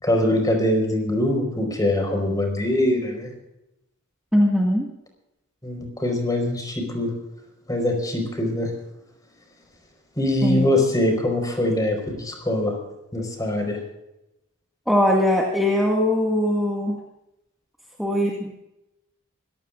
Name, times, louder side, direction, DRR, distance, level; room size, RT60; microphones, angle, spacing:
voice 1, 0.0-3.3 5.6-7.1 7.7-8.7 10.2-12.7 13.1-13.8, left 1 dB, 20° left, 3 dB, 4.6 m, -23 dB
voice 2, 4.3-4.9 10.4-10.7 14.9-17.0 18.0-18.5, left 1 dB, ahead, -2 dB, 1.9 m, -21 dB
24.5 x 16.0 x 2.5 m, 0.90 s
head